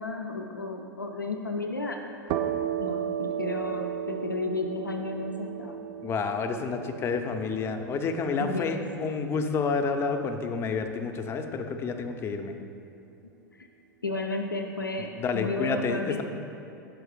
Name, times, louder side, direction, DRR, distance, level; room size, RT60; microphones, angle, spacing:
voice 1, 0.0-2.0 2.8-5.8 8.4-8.8 14.0-16.2, left 2 dB, 85° left, 3 dB, 0.4 m, -33 dB
sound 1, 2.3-9.8, right 9 dB, 40° right, 0.4 m, -35 dB
voice 2, 6.0-12.5 15.0-16.2, left 5 dB, 25° left, 6 dB, 0.5 m, -29 dB
6.2 x 4.8 x 4.7 m, 2.7 s
figure-of-eight pair, 90°, 11 cm